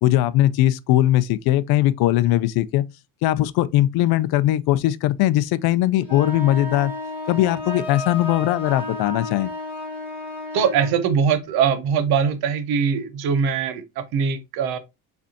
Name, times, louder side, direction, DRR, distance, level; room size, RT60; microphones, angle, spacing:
voice 1, 0.0-2.8 3.2-6.9 7.3-9.5, left 14 dB, 75° left, 0.5 m, -20 dB
sound 1, 6.0-11.0, left 2 dB, 5° right, 2.2 m, -32 dB
voice 2, 10.5-14.8, right 7 dB, 75° right, 0.8 m, -22 dB
4.9 x 3.4 x 2.7 m
cardioid pair, 105°, 38 cm